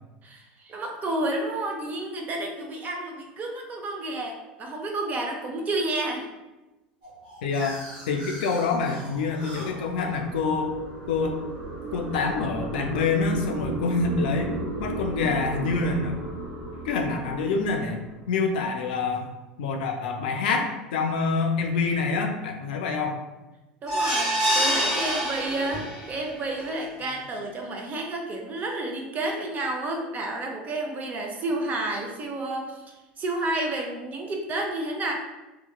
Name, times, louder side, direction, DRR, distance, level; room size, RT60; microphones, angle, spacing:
voice 1, 0.2-6.3 23.8-35.1, right 2 dB, 35° right, 1 dB, 0.5 m, -30 dB
sound 1, 7.0-11.8, equal, 55° right, 1.2 m, -43 dB
voice 2, 7.4-7.8 8.1-10.7 11.1-11.3 11.9-14.5 14.8-16.1 16.8-19.3 19.6-23.2, left 4 dB, 70° left, 3 dB, 0.3 m, -26 dB
sound 2, 7.9-18.6, right 3 dB, 80° right, 0.5 m, -36 dB
sound 3, 23.9-26.1 26.6-26.7 27.0-27.1, right 1 dB, 15° right, 1.3 m, -25 dB
2.8 x 2.1 x 2.2 m, 1.1 s
hypercardioid pair, 80°, 5 cm